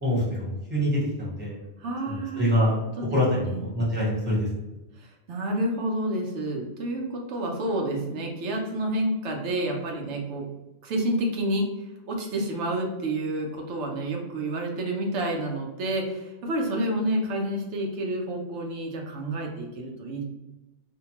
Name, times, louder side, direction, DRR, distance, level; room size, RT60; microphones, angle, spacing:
voice 1, 0.0-1.6 2.1-2.8 3.1-4.5, equal, 10° right, -6 dB, 0.8 m, -25 dB
voice 2, 1.8-2.5 3.0-3.6 5.0-10.5 10.8-11.7 12.1-20.2, right 1 dB, 90° right, 0 dB, 0.9 m, -29 dB
2.7 x 2.2 x 2.9 m, 1.0 s
omnidirectional pair, 1.1 m